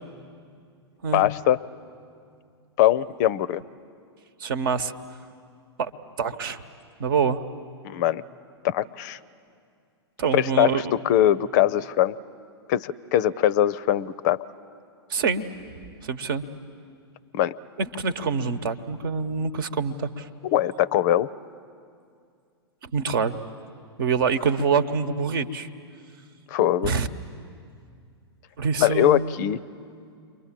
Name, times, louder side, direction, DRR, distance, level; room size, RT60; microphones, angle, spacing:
voice 1, 1.1-1.6 2.8-3.6 7.8-8.2 8.6-9.2 10.3-12.2 12.7-14.4 17.3-17.5 20.4-21.3 26.5-26.9 28.8-29.6, left 12 dB, 45° left, 18 dB, 0.5 m, -21 dB
voice 2, 4.4-4.9 5.8-5.9 6.2-6.6 7.0-7.4 10.2-10.8 15.1-15.4 16.0-16.4 17.8-20.3 22.8-23.4 24.0-25.7 26.8-27.1 28.6-29.3, right 5 dB, 55° right, 11 dB, 1.1 m, -25 dB
29.0 x 23.0 x 7.5 m, 2.3 s
figure-of-eight pair, 100°, 14 cm